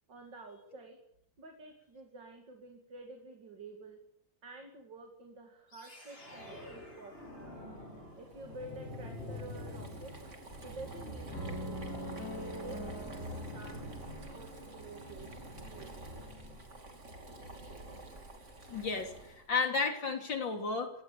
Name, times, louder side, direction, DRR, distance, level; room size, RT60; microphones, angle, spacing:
voice 1, 0.1-1.0 1.4-4.0 4.4-7.4 8.2-10.2 10.6-12.0 12.3-16.0, right 2 dB, 65° right, 3 dB, 3.3 m, -50 dB
sound 1, 5.7-16.8, left 1 dB, 30° left, 8.4 m, -48 dB
Boiling, 8.2-19.5, right 1 dB, 40° right, 3.2 m, -48 dB
sound 2, 11.3-15.5, equal, 50° left, 5.6 m, -44 dB
voice 2, 18.7-20.9, left 4 dB, 70° left, 4 dB, 4.1 m, -33 dB
25.0 x 17.5 x 8.6 m, 0.77 s
omnidirectional pair, 2.1 m